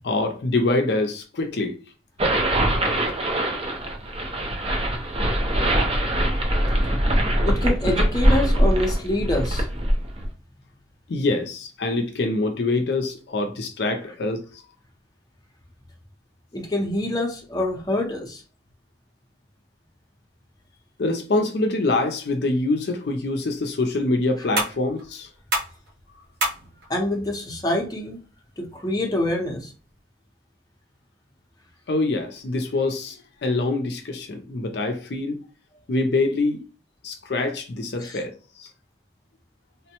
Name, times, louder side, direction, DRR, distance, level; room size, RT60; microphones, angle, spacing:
voice 1, 0.0-1.8 11.1-14.6 21.0-25.3 31.9-35.4 35.9-36.6 37.0-38.7, left 2 dB, 60° left, 0.5 m, -25 dB
sound 1, 2.2-10.3, right 1 dB, 30° right, 0.6 m, -22 dB
voice 2, 7.4-9.7 16.5-18.4 26.9-28.2 28.6-29.7 38.0-38.2, left 1 dB, 20° left, 0.7 m, -26 dB
sound 2, 23.0-30.0, right 1 dB, 65° right, 1.0 m, -34 dB
3.5 x 2.1 x 2.8 m
head